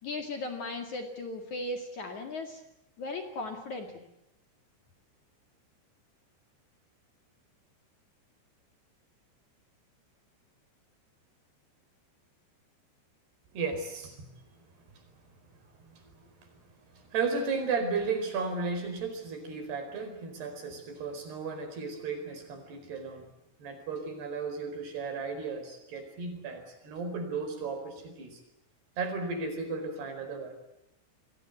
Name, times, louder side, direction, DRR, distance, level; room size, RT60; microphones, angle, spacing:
voice 1, 0.0-2.6 3.0-4.1, left 2 dB, 50° left, 5 dB, 3.0 m, -37 dB
voice 2, 13.5-14.3 16.0-16.1 17.1-23.2 23.6-28.4 29.0-30.5, right 4 dB, 60° right, 6 dB, 6.6 m, -34 dB
29.0 x 21.5 x 8.1 m, 0.83 s
omnidirectional pair, 5.2 m